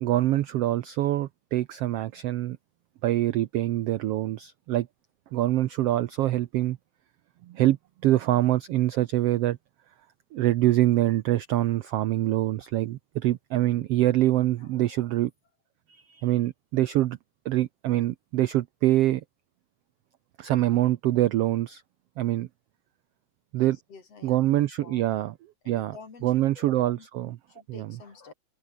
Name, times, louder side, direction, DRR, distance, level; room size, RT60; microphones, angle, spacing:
voice 1, 0.0-2.6 3.0-4.9 5.3-6.8 7.4-7.8 8.0-9.6 10.3-15.3 15.9-17.2 17.4-19.2 20.4-21.8 22.2-22.5 23.5-23.8 24.2-25.3 25.7-26.0 26.2-27.3 27.7-28.0, right 14 dB, 80° right, 1.3 m, -25 dB
voice 2, 14.6-15.2 23.6-24.5 24.8-25.1 25.6-27.1 27.5-28.3, left 5 dB, 50° left, 4.8 m, -49 dB
omnidirectional pair, 3.7 m